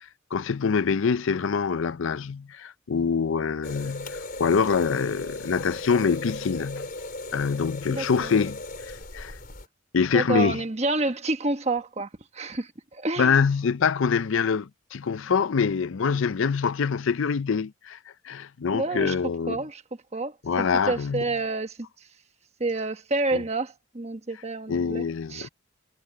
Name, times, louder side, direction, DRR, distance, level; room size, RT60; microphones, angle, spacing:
voice 1, 0.3-6.9 7.3-8.6 8.9-9.4 9.9-10.6 13.2-18.0 18.2-19.6 20.4-21.2 23.3-23.4 24.7-25.5, left 5 dB, 70° left, 0.5 m, -25 dB
sound 1, 3.6-9.7, left 2 dB, 45° left, 4.9 m, -37 dB
voice 2, 7.9-8.3 10.1-13.4 18.7-19.2 19.5-19.8 20.1-21.8 22.6-25.0 25.3-25.5, right 2 dB, 30° right, 1.3 m, -29 dB
head